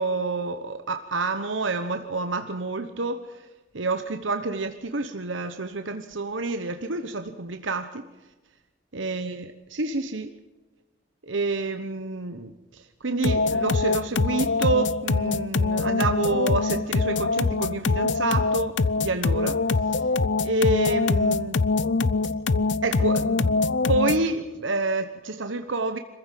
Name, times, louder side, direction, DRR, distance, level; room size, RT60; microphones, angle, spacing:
voice 1, 0.0-3.5 3.7-8.1 8.9-10.3 11.2-19.6 20.4-21.6 22.8-26.0, right 3 dB, 70° right, 7 dB, 1.1 m, -28 dB
sound 1, 13.2-24.3, left 3 dB, 60° left, 0.6 m, -24 dB
26.5 x 15.0 x 7.6 m, 1.1 s
head